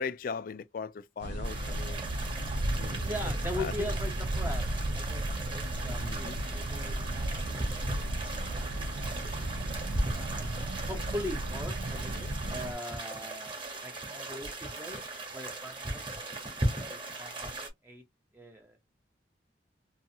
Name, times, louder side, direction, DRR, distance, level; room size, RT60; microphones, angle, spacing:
voice 1, 0.0-2.0 2.7-3.2 3.6-3.9 6.0-6.4, left 5 dB, 50° left, 0.3 m, -38 dB
sound 1, 1.2-12.7, right 1 dB, 85° right, 0.6 m, -34 dB
sound 2, 1.4-17.7, right 2 dB, 30° right, 1.0 m, -38 dB
voice 2, 3.0-4.6 4.9-7.6 8.4-8.7 9.0-9.3 10.1-13.5 13.8-15.0 15.3-16.0 16.9-17.5 17.8-18.0 18.3-18.8, left 1 dB, 10° right, 0.6 m, -41 dB
2.7 x 2.4 x 2.6 m
head